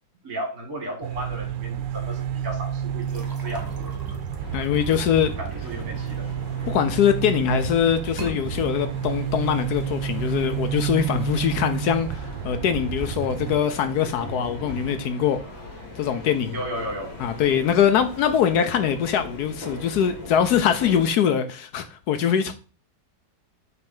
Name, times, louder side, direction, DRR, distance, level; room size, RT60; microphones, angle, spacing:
voice 1, 0.2-3.9 5.4-6.3 6.6-6.7 16.5-17.1, right 1 dB, 50° right, 2.5 m, -34 dB
sound 1, 1.0-13.6, right 9 dB, 75° right, 1.2 m, -30 dB
sound 2, 3.0-6.8 7.3-7.7 8.1-8.4, right 2 dB, 15° right, 0.8 m, -42 dB
sound 3, 4.4-21.1, left 1 dB, 35° left, 1.5 m, -40 dB
voice 2, 4.5-5.3 6.7-15.4 16.0-16.6 17.2-22.5, left 8 dB, 70° left, 1.0 m, -22 dB
5.8 x 3.3 x 5.3 m
omnidirectional pair, 2.0 m